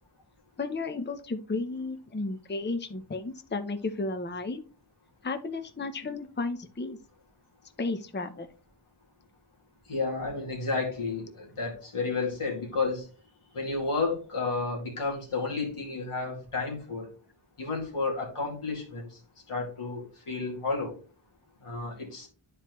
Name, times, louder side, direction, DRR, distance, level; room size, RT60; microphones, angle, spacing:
voice 1, 0.6-4.6 5.2-7.0 7.8-8.5, left 3 dB, 20° left, 7 dB, 0.7 m, -33 dB
voice 2, 9.9-13.1 13.5-17.1 17.6-19.2 19.5-20.9 21.6-22.3, left 3 dB, 90° left, -2 dB, 2.2 m, -31 dB
10.0 x 4.5 x 3.0 m, 0.37 s
wide cardioid pair, 55°, 49 cm